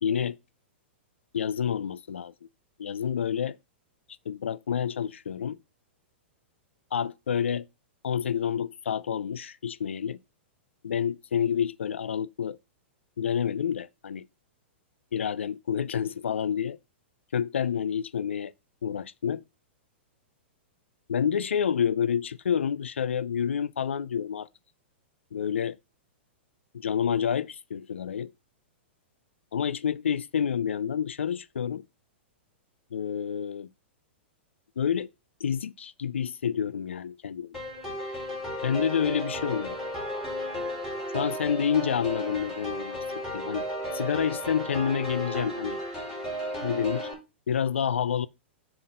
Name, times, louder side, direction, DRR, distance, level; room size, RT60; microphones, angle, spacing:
voice 1, 0.0-0.4 1.3-2.3 2.8-3.6 4.3-5.6 6.9-7.7 8.0-10.2 10.8-12.6 13.2-14.3 15.1-16.8 17.3-18.5 18.8-19.4 21.1-24.5 25.3-25.8 26.7-28.3 29.5-31.8 32.9-33.7 34.8-35.1 35.4-37.6 38.6-39.8 41.1-43.0 43.3-43.6 43.9-45.8 46.6-47.1 47.5-48.3, left 8 dB, 90° left, 0.3 m, -28 dB
sound 1, 37.5-47.1, equal, 5° right, 3.1 m, -34 dB
7.3 x 2.4 x 5.4 m
hypercardioid pair, 120°, 6 cm